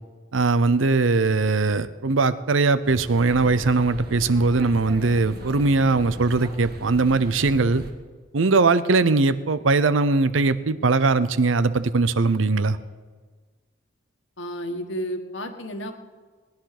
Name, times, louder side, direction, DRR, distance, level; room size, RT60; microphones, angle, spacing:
voice 1, 0.3-7.8 8.3-12.8, right 3 dB, 90° right, 15 dB, 0.7 m, -20 dB
sound 1, 2.8-7.9, equal, 50° right, 1.9 m, -38 dB
voice 2, 14.4-15.9, equal, 75° left, 6 dB, 1.7 m, -31 dB
19.5 x 10.5 x 6.0 m, 1.4 s
head